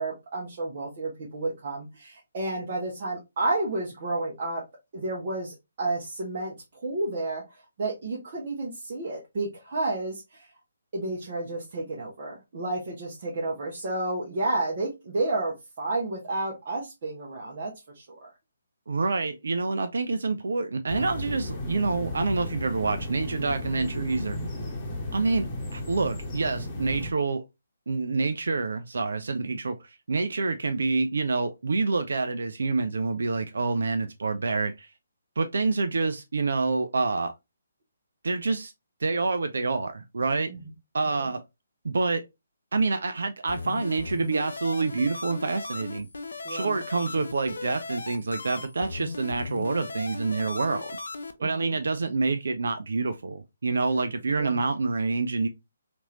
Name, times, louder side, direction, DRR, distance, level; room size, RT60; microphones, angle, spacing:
voice 1, 0.0-4.6 4.9-7.4 7.8-10.5 10.9-18.3 40.5-40.7 41.1-41.2 46.4-46.8 51.4-51.8 54.4-54.6, right 2 dB, 45° right, 0.9 m, -31 dB
voice 2, 18.9-24.4 25.1-25.5 25.7-27.4 27.9-34.9 35.4-37.3 38.2-38.7 39.0-40.5 40.9-41.4 41.8-42.3 42.7-46.1 46.5-51.0 51.4-55.5, right 3 dB, 65° right, 0.3 m, -27 dB
sound 1, 20.9-27.1, left 1 dB, 20° left, 1.0 m, -34 dB
sound 2, 43.5-51.3, left 3 dB, 70° left, 0.4 m, -37 dB
2.9 x 2.5 x 2.8 m
figure-of-eight pair, 140°, 0 cm